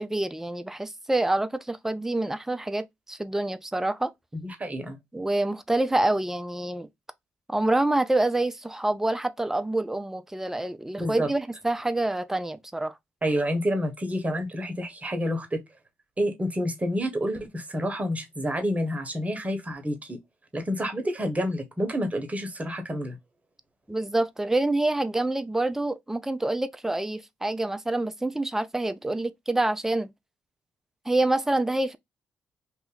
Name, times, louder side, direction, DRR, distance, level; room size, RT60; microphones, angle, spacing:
voice 1, 0.0-4.1 5.1-6.9 7.5-12.9 23.9-30.1 31.1-32.0, right 2 dB, 5° right, 0.4 m, -27 dB
voice 2, 4.3-5.0 11.0-11.3 13.2-15.6 16.2-20.2 20.5-23.2, equal, 25° right, 1.3 m, -29 dB
2.7 x 2.5 x 3.9 m
hypercardioid pair, 50°, 5 cm